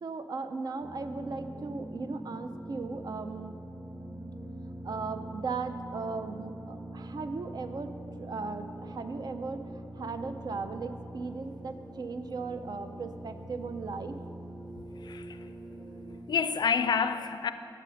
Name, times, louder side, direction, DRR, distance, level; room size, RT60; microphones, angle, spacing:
voice 1, 0.0-3.6 4.8-14.2, right 4 dB, 60° right, 0.4 m, -37 dB
sound 1, 0.8-16.2, right 1 dB, 15° right, 0.7 m, -43 dB
voice 2, 15.0-15.5 16.3-17.5, left 6 dB, 65° left, 0.3 m, -28 dB
8.4 x 5.4 x 6.3 m
wide cardioid pair, 140°, 8 cm